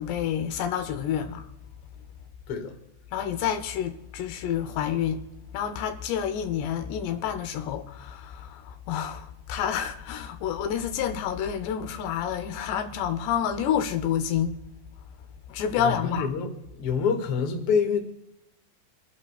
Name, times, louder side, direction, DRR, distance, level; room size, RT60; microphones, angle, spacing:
voice 1, 0.0-1.5 3.1-5.2 5.5-14.6 15.5-16.3, left 9 dB, 80° left, 3.0 m, -29 dB
voice 2, 15.7-18.0, left 6 dB, 50° left, 1.7 m, -27 dB
27.0 x 11.0 x 2.3 m
omnidirectional pair, 4.9 m